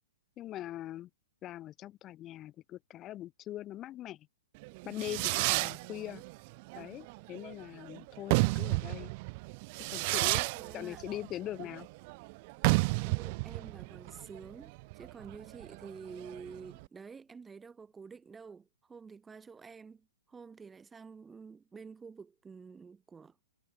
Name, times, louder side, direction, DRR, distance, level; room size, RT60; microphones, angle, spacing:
voice 1, 0.4-1.1 1.4-4.3 4.9-6.2 6.8-9.1 9.9-10.5 10.7-11.9, left 13 dB, 25° left, 1.7 m, -42 dB
Fireworks, 4.6-16.8, right 27 dB, 40° right, 1.5 m, -32 dB
voice 2, 10.5-11.0 11.6-11.7 13.0-23.3, right 5 dB, 10° right, 6.1 m, -49 dB
figure-of-eight pair, 115°, 0 cm